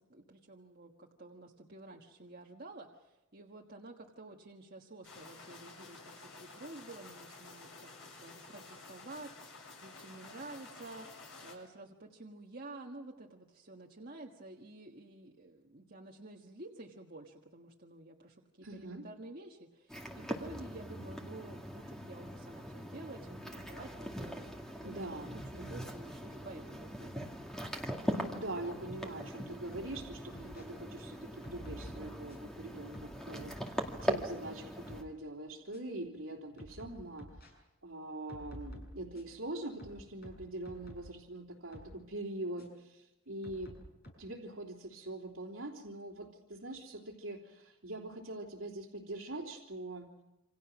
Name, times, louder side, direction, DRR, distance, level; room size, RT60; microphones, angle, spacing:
voice 1, 0.0-27.3, right 2 dB, 45° right, 0 dB, 1.6 m, -50 dB
sound 1, 5.0-11.5, left 3 dB, 60° left, 7.3 m, -52 dB
voice 2, 18.6-19.1 24.8-25.8 28.1-43.7 44.2-50.1, right 1 dB, 70° right, -3 dB, 3.3 m, -43 dB
sound 2, 19.9-35.0, equal, ahead, 2.1 m, -41 dB
sound 3, 29.7-30.6 31.4-32.5 32.9-34.3 34.7-35.1 35.7-35.8 36.6-37.5 38.3-39.4 39.8-41.1 41.7-41.9 42.6-42.7 43.4-44.1, equal, 45° left, 7.0 m, -50 dB
28.0 x 26.5 x 6.2 m, 0.99 s
head